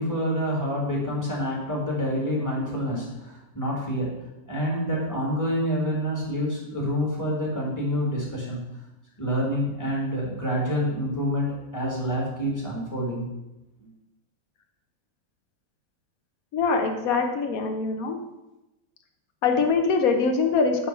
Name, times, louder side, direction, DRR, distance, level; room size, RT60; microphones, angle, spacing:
voice 1, 0.0-8.6 9.2-13.3, equal, 10° left, -4 dB, 1.8 m, -27 dB
voice 2, 16.5-18.2 19.4-20.9, left 4 dB, 55° left, 5 dB, 1.1 m, -23 dB
8.8 x 3.5 x 5.4 m, 0.95 s
omnidirectional pair, 2.0 m